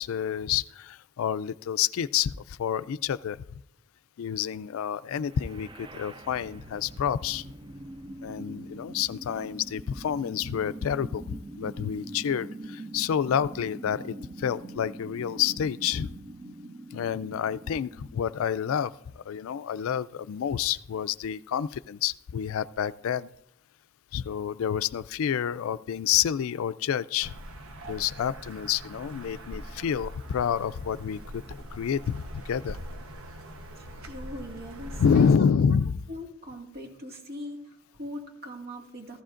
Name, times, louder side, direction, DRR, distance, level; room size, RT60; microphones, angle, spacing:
voice 1, 0.0-3.4 4.2-7.5 8.2-11.2 11.6-16.1 16.9-23.3 24.1-27.3 27.9-32.8 35.0-36.0, left 8 dB, 75° left, 16 dB, 0.3 m, -28 dB
sound 1, 5.2-19.1, right 1 dB, 25° right, 0.4 m, -43 dB
sound 2, 27.2-35.3, equal, 85° right, 1.0 m, -42 dB
voice 2, 33.8-35.5 36.1-39.2, equal, 50° right, 1 dB, 2.0 m, -41 dB
14.5 x 14.5 x 2.5 m, 0.79 s
head